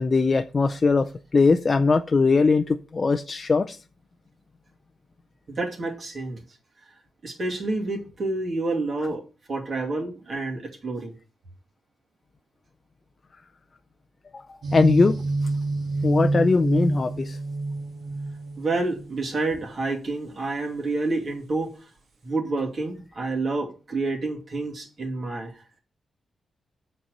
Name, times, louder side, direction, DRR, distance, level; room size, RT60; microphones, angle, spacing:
voice 1, 0.0-3.8 14.3-14.4 14.7-15.2 16.0-17.4, left 4 dB, 35° left, 0.5 m, -21 dB
voice 2, 5.5-6.4 7.2-9.2 9.5-11.1 18.6-21.8 22.2-25.6, right 3 dB, 45° right, 2.5 m, -28 dB
sound 1, 14.6-19.2, right 2 dB, 65° right, 2.3 m, -27 dB
7.5 x 4.4 x 6.6 m
cardioid pair, 115°, 0 cm